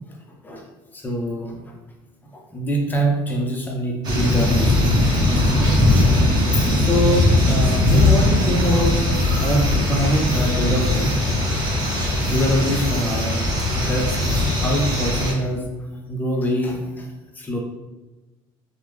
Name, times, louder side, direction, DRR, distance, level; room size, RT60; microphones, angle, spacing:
voice 1, 0.9-1.6 2.3-5.1 5.6-6.0 6.8-11.5 12.2-13.5 13.8-15.6 16.1-17.1 17.4-17.6, right 1 dB, 20° left, 0 dB, 0.5 m, -24 dB
sound 1, 4.0-15.3, left 2 dB, 45° right, 0.8 m, -19 dB
3.1 x 2.0 x 3.4 m, 1.1 s
cardioid pair, 135°, 10 cm